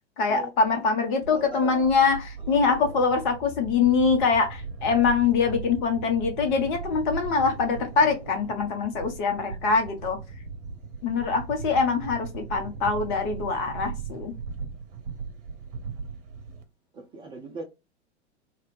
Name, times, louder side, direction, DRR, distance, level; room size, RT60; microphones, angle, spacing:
voice 1, 0.2-10.2 11.0-14.3, left 5 dB, 45° left, 1.0 m, -24 dB
sound 1, 0.6-16.6, right 4 dB, 55° right, 0.8 m, -38 dB
voice 2, 1.3-1.9 2.4-3.0 16.9-17.6, right 3 dB, 15° right, 0.5 m, -40 dB
2.8 x 2.4 x 3.2 m
figure-of-eight pair, 95°, 35 cm